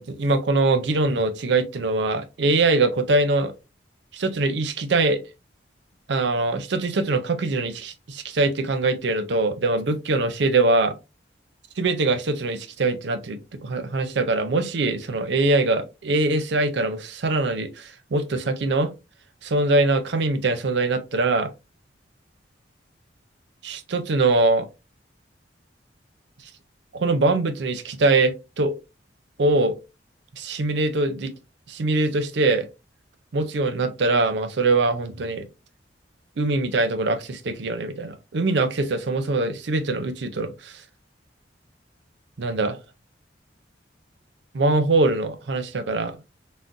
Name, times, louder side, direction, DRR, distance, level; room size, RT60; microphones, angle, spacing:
voice 1, 0.0-3.5 4.1-5.2 6.1-10.9 11.8-18.9 19.4-21.5 23.6-24.7 26.9-28.8 29.4-29.8 30.4-31.3 31.7-32.7 33.3-35.5 36.4-40.8 42.4-42.8 44.5-46.2, right 2 dB, 70° right, 0.5 m, -23 dB
3.8 x 2.1 x 2.5 m
head